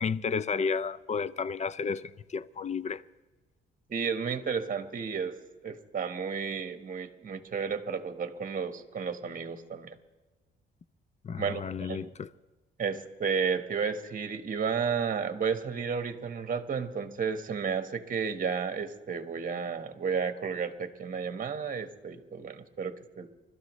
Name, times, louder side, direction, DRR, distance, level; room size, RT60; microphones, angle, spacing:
voice 1, 0.0-3.0 11.2-12.3, left 5 dB, 35° left, 0.5 m, -32 dB
voice 2, 3.9-5.4 5.6-9.9 11.4-12.1 12.8-23.3, right 6 dB, 45° right, 1.4 m, -32 dB
29.5 x 13.0 x 3.2 m
cardioid pair, 90°, 20 cm